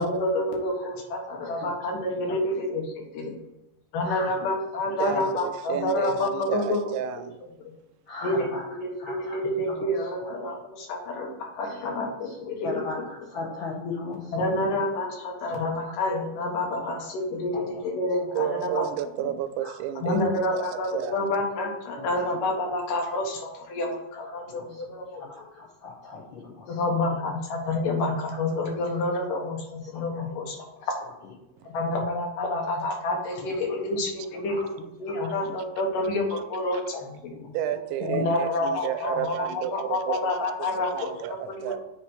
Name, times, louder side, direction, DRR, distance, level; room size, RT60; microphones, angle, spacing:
voice 1, 0.0-3.4 3.9-6.8 8.2-13.0 14.3-18.8 20.0-25.2 26.7-30.6 31.7-34.7 35.0-37.3 38.1-41.1 41.6-41.7, left 2 dB, 85° left, 1 dB, 3.0 m, -28 dB
voice 2, 4.0-4.4 8.1-8.6 9.0-9.4 10.2-10.3 11.8-12.3 12.6-14.5 17.5-17.6 19.6-19.7 22.0-22.1 24.4-24.8 25.5-26.6 30.2-30.3 34.5-34.6 35.2-35.3 37.3-37.5, left 3 dB, 70° left, -4 dB, 1.1 m, -37 dB
voice 3, 5.0-7.4 18.3-21.2 36.3-36.4 37.5-41.8, right 11 dB, 80° right, 10 dB, 1.9 m, -32 dB
7.3 x 3.3 x 6.1 m, 0.89 s
omnidirectional pair, 3.7 m